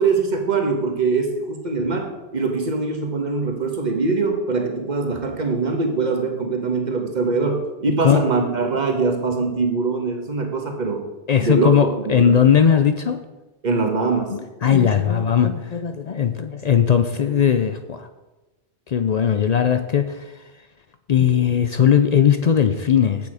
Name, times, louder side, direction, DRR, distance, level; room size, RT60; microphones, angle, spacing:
voice 1, 0.0-11.1 11.4-11.7 12.1-12.4 13.6-14.3, right 4 dB, 40° right, 3 dB, 1.4 m, -22 dB
voice 2, 11.3-13.2 14.3-18.1 18.9-20.3 21.1-23.3, left 8 dB, 55° left, 9 dB, 0.4 m, -18 dB
8.4 x 6.9 x 4.9 m, 1.1 s
omnidirectional pair, 1.1 m